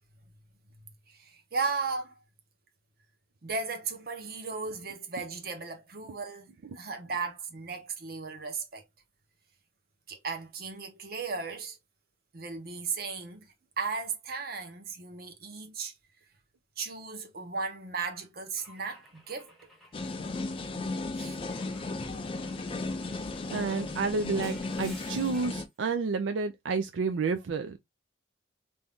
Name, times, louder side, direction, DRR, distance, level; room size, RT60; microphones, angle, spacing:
voice 1, 1.1-2.2 3.4-6.5 6.7-8.8 10.1-11.8 12.3-13.5 13.8-15.9 16.8-19.5 21.2-21.4, right 4 dB, 50° right, 0.8 m, -36 dB
Car / Engine / Glass, 18.6-20.8 21.5-25.7, equal, ahead, 0.7 m, -54 dB
sound 1, 19.9-25.7, left 3 dB, 30° left, 0.3 m, -35 dB
voice 2, 23.5-27.8, right 4 dB, 80° right, 0.4 m, -30 dB
2.7 x 2.3 x 3.4 m
head